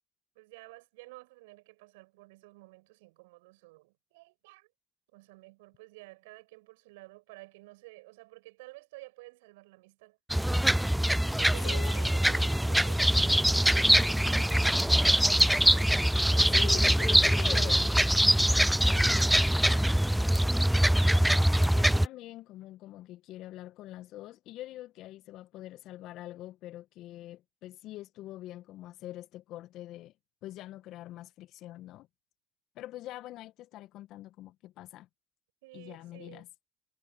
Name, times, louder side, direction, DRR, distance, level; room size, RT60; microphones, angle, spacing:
voice 1, 0.3-4.7 5.1-10.2 11.1-14.9 35.6-36.5, right 23 dB, 80° right, 8.0 m, -51 dB
sound 1, 10.3-22.1, equal, 5° right, 0.4 m, -23 dB
voice 2, 11.6-12.0 16.5-17.9 18.9-19.9 20.3-30.1 30.4-32.1 32.7-35.1 35.7-36.5, left 15 dB, 65° left, 1.8 m, -44 dB
hypercardioid pair, 50°, 0 cm